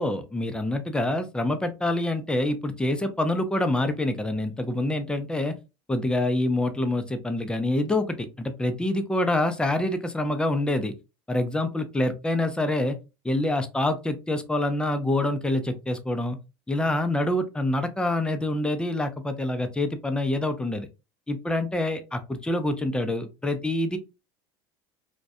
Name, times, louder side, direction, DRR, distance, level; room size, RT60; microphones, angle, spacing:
voice 1, 0.0-5.6 5.9-10.9 11.3-13.0 13.3-16.4 16.7-20.9 21.3-24.0, left 1 dB, 10° left, 0.4 m, -26 dB
2.3 x 2.1 x 2.6 m
supercardioid pair, 100°, 12 cm